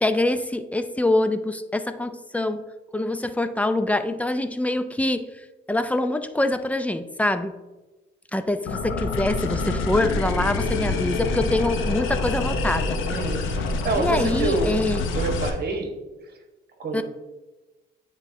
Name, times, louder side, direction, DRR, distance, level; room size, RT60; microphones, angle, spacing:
voice 1, 0.0-2.6 2.9-5.2 5.7-7.6 8.3-13.0 14.0-15.0 16.9-17.0, left 1 dB, 5° left, 10 dB, 0.4 m, -24 dB
sound 1, 8.7-15.5, left 3 dB, 85° left, 0.8 m, -26 dB
voice 2, 13.1-13.4 13.8-14.7 15.1-15.9 16.8-17.0, right 4 dB, 55° right, 4 dB, 1.2 m, -26 dB
9.4 x 3.7 x 2.7 m, 1.1 s
cardioid pair, 90°, 20 cm